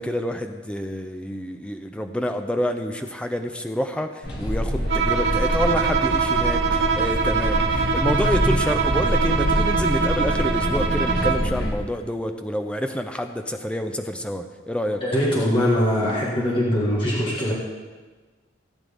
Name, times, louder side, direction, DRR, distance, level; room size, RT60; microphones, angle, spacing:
voice 1, 0.0-15.0, equal, 5° left, 6 dB, 0.6 m, -28 dB
sound 1, 4.2-11.7, equal, 55° left, 2.3 m, -25 dB
Bowed string instrument, 4.9-11.5, right 5 dB, 60° right, 1.1 m, -24 dB
voice 2, 15.0-17.5, equal, 25° left, -6 dB, 1.8 m, -22 dB
17.5 x 9.3 x 3.6 m, 1.3 s
head